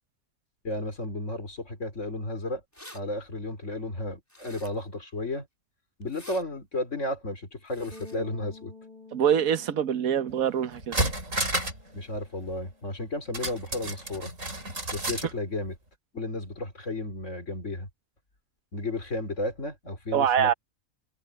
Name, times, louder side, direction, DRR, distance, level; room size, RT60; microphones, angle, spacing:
voice 1, 0.6-2.6 2.9-5.5 6.0-8.7 11.9-14.3 14.9-15.7 16.1-17.9 18.7-20.6, left 2 dB, 60° left, 4.2 m, -33 dB
sound 1, 2.7-3.0 4.3-4.9 6.0-6.4 7.6-8.2, left 1 dB, 10° left, 4.8 m, -48 dB
sound 2, 7.9-14.2, left 3 dB, 35° right, 3.9 m, -52 dB
voice 2, 9.1-11.0 20.1-20.5, right 9 dB, 85° right, 1.5 m, -24 dB
sound 3, 10.3-10.4 10.7-11.9 12.1-12.2 13.3-15.3 15.6-15.7, right 1 dB, 65° right, 6.1 m, -31 dB
omnidirectional pair, 1.4 m